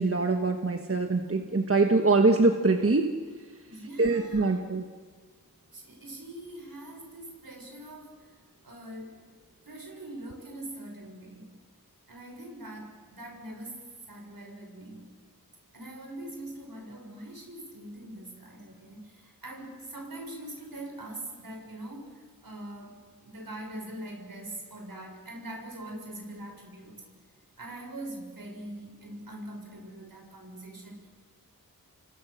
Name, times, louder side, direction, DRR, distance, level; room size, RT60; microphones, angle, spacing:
voice 1, 0.0-3.1 4.0-4.8, right 3 dB, 40° right, 4 dB, 1.5 m, -23 dB
voice 2, 3.7-4.7 5.7-8.4 8.6-9.2 9.6-11.5 12.1-15.1 15.7-27.0 27.6-31.1, right 1 dB, 70° right, 2 dB, 6.7 m, -43 dB
28.5 x 24.5 x 6.6 m, 1.5 s
wide cardioid pair, 60°, 36 cm